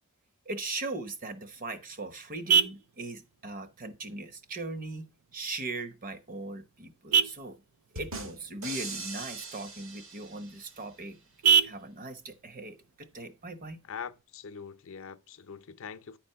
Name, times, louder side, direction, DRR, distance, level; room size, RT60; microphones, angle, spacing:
voice 1, 0.4-7.6 7.9-11.2 11.6-13.8, right 2 dB, 40° right, 1.0 m, -39 dB
Vehicle horn car horn honking, 1.2-14.2, right 6 dB, 85° right, 0.6 m, -33 dB
sound 1, 8.0-10.8, right 3 dB, 65° right, 1.7 m, -41 dB
voice 2, 13.9-16.2, left 6 dB, 60° left, 0.6 m, -43 dB
10.0 x 4.3 x 5.6 m
head